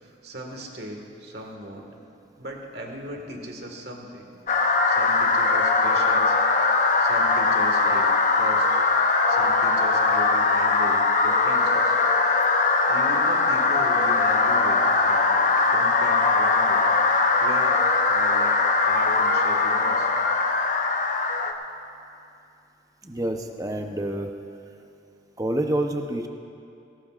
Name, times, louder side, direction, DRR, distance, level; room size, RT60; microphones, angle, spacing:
voice 1, 0.0-1.9 2.4-4.3 4.9-6.3 7.0-8.7 9.3-11.9 12.9-16.8 17.4-18.6 18.9-20.1, right 1 dB, 60° right, 1 dB, 1.7 m, -37 dB
sound 1, 4.5-21.5, left 3 dB, 40° left, 0.7 m, -21 dB
voice 2, 23.0-24.3 25.4-26.3, right 1 dB, 20° right, 4 dB, 0.7 m, -27 dB
19.0 x 17.5 x 2.5 m, 2.6 s
head